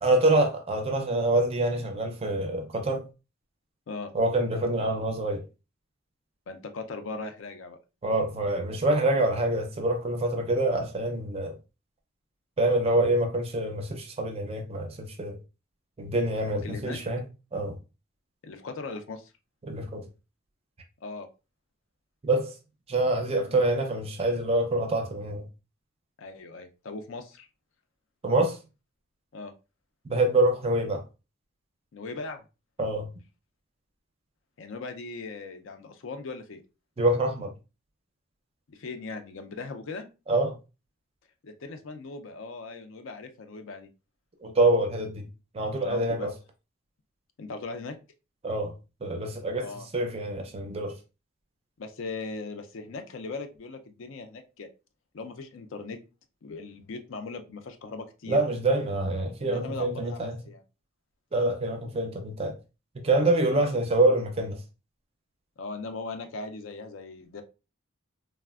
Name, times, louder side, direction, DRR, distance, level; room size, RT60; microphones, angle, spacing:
voice 1, 0.0-3.1 4.1-5.4 8.0-11.6 12.6-15.4 16.0-17.2 17.5-17.8 19.6-20.0 22.2-22.5 22.9-25.5 28.2-28.6 30.1-31.0 32.8-33.1 37.0-37.5 40.3-40.5 44.4-45.2 45.5-46.3 48.4-48.7 49.0-49.7 49.9-50.9 58.3-60.4 61.3-62.6 63.0-64.6, right 2 dB, 30° right, 0.4 m, -26 dB
voice 2, 6.5-7.8 16.5-17.0 18.4-19.3 21.0-21.3 23.5-23.6 26.2-27.5 29.3-29.5 31.9-32.4 34.6-36.6 38.7-40.1 41.4-43.9 45.8-46.3 47.4-47.9 49.6-49.9 51.8-54.7 55.1-56.0 56.4-58.4 59.4-60.6 63.5-63.7 65.6-67.4, left 3 dB, 65° left, 0.4 m, -39 dB
3.2 x 2.0 x 2.3 m
head